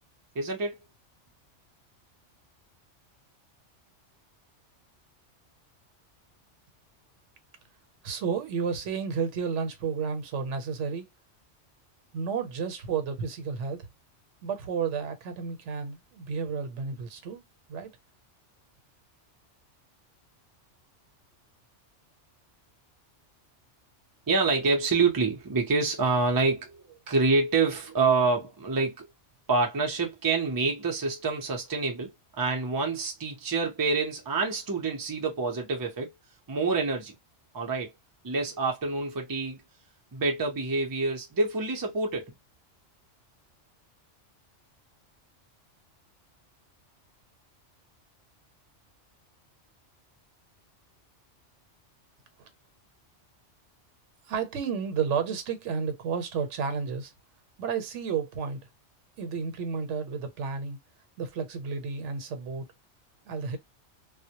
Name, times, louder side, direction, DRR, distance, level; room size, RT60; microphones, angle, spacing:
voice 1, 0.3-0.8 24.3-29.1 29.5-36.1 36.5-37.2 37.5-37.9 38.2-39.6 40.1-42.3, right 3 dB, 30° right, 0.4 m, -27 dB
voice 2, 8.0-11.1 12.1-13.9 14.4-17.4 17.7-17.9 54.3-57.1 57.6-58.6 59.2-60.8 61.2-62.7 63.3-63.6, right 6 dB, 80° right, 1.0 m, -31 dB
2.1 x 2.1 x 2.8 m
omnidirectional pair, 1.2 m